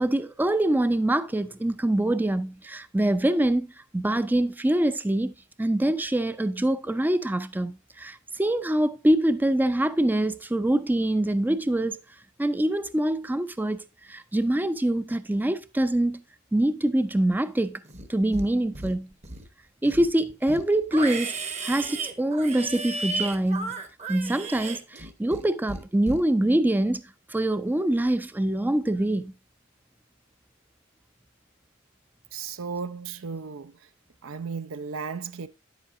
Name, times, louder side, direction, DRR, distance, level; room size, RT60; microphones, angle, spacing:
voice 1, 0.0-5.3 5.6-12.0 12.4-16.2 16.5-17.8 18.1-19.1 19.8-21.3 21.6-23.8 24.1-27.0 27.3-29.3, right 1 dB, 10° right, 0.4 m, -24 dB
Livestock farm animals working animals, 17.9-18.5 18.8-19.5 19.8-25.4 25.7-26.2, right 3 dB, 35° right, 1.0 m, -34 dB
voice 2, 32.3-33.9 34.2-35.5, right 5 dB, 70° right, 0.5 m, -35 dB
10.0 x 8.1 x 2.6 m
head